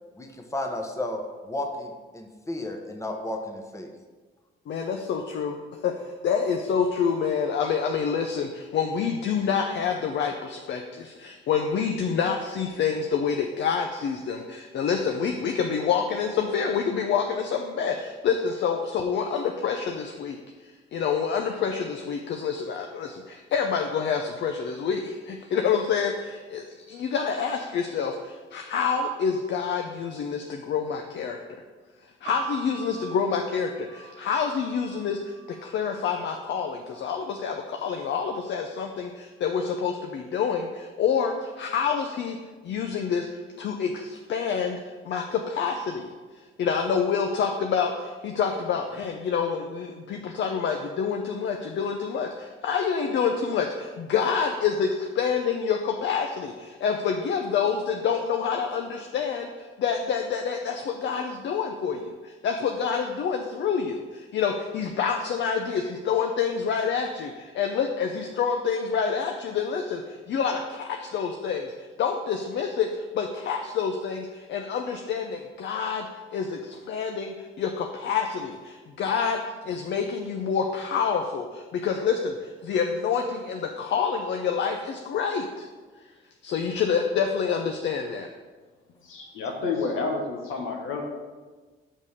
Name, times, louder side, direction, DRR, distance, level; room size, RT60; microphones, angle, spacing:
voice 1, 0.2-3.9, left 1 dB, 15° left, 3 dB, 1.1 m, -33 dB
voice 2, 4.7-5.6 5.8-31.4 32.2-35.3 35.6-42.4 42.6-43.3 43.6-44.8 45.0-46.1 46.6-85.7 86.4-88.3, left 6 dB, 65° left, 4 dB, 0.6 m, -27 dB
sound 1, 32.2-36.1 36.9-37.6, right 6 dB, 90° right, 1.0 m, -43 dB
voice 3, 89.0-91.0, left 4 dB, 90° left, 1 dB, 1.3 m, -29 dB
5.5 x 5.3 x 6.5 m, 1.3 s
cardioid pair, 90°, 20 cm